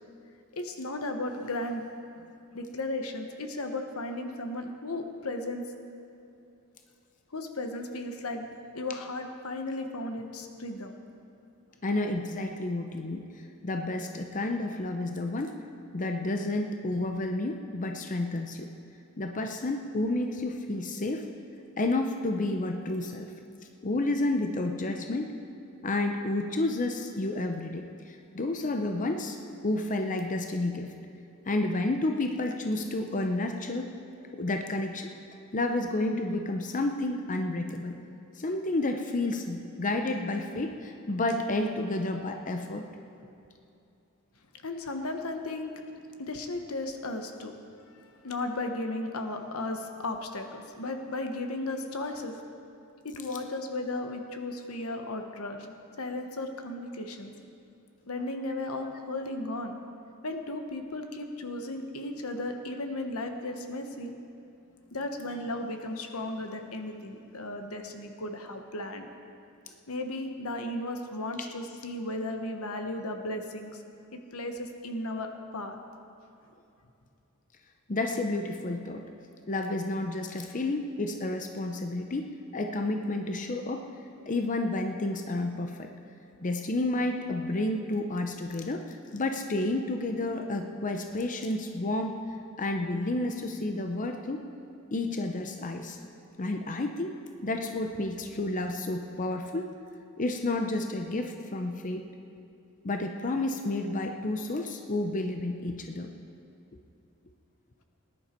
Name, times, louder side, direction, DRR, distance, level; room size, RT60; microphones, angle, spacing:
voice 1, 0.5-1.8 2.2-5.7 7.3-8.5 8.7-10.9 44.6-45.7 46.2-47.5 47.9-52.4 53.0-55.6 56.0-57.3 58.1-59.8 60.2-64.1 64.9-69.1 69.9-73.7 74.1-75.8, left 2 dB, 80° left, 5 dB, 1.2 m, -35 dB
voice 2, 11.8-13.3 13.6-15.6 15.9-18.7 19.2-21.3 21.8-23.3 23.8-25.3 25.8-29.4 29.6-30.9 31.5-33.9 34.3-35.1 35.5-38.0 38.4-42.9 77.9-79.0 79.5-83.9 84.3-85.9 86.4-92.2 92.6-94.5 94.9-96.0 96.4-97.1 97.4-99.7 100.2-102.0 102.8-106.1, left 2 dB, 35° left, 5 dB, 0.7 m, -30 dB
19.5 x 11.0 x 4.4 m, 2.6 s
head